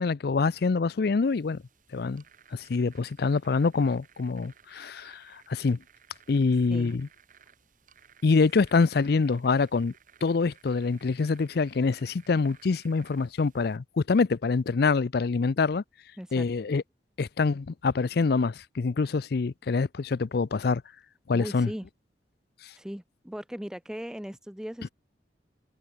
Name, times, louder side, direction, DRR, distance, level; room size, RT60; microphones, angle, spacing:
voice 1, 0.0-1.6 1.9-2.2 2.5-5.8 6.3-7.1 8.2-9.9 10.2-15.8 16.3-16.8 17.2-20.8 21.3-21.7, left 4 dB, 60° left, 0.5 m, -25 dB
sound 1, 1.2-13.8, right 7 dB, 45° right, 3.6 m, -58 dB
voice 2, 16.2-16.5 21.3-21.9 22.7-24.9, equal, 5° right, 0.5 m, -38 dB
head